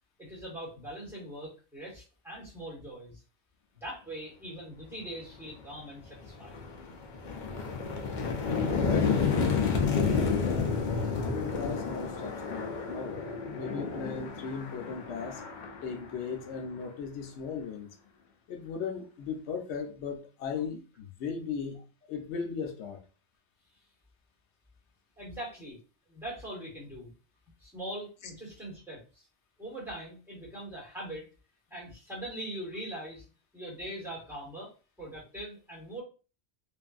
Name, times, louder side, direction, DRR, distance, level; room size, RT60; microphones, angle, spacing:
voice 1, 0.2-3.2 3.8-6.6 25.2-25.8 26.1-27.1 27.6-29.3 29.6-31.3 31.7-33.2 33.5-34.7 35.0-36.0, right 1 dB, ahead, 1.4 m, -41 dB
sound 1, 5.5-5.6 6.0-16.8, left 5 dB, 55° left, 0.6 m, -31 dB
voice 2, 8.2-9.3 9.8-10.7 11.2-13.3 13.5-15.4 15.8-17.9 18.5-21.8 22.1-23.0, left 6 dB, 85° left, 0.9 m, -37 dB
2.6 x 2.5 x 2.3 m
omnidirectional pair, 1.1 m